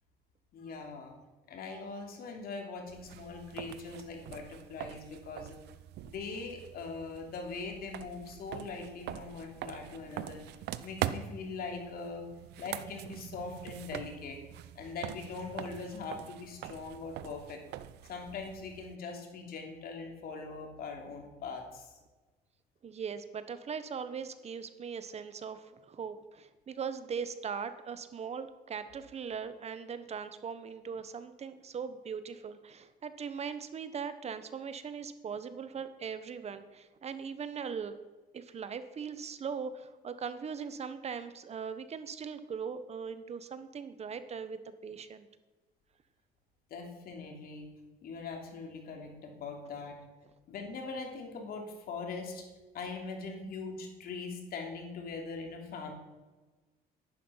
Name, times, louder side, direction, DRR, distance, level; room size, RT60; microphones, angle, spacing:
voice 1, 0.5-1.2 1.5-5.6 6.0-10.4 10.8-12.2 12.6-14.4 14.7-17.6 18.1-21.9 46.7-47.7 48.0-50.0 50.5-52.4 52.7-55.9, left 4 dB, 65° left, 2 dB, 3.1 m, -41 dB
sound 1, 2.9-18.9, right 12 dB, 80° right, 0.7 m, -43 dB
voice 2, 22.8-38.0 38.3-45.3, right 6 dB, 40° right, 11 dB, 1.2 m, -40 dB
11.5 x 11.0 x 5.8 m, 1.2 s
cardioid pair, 110°, 17 cm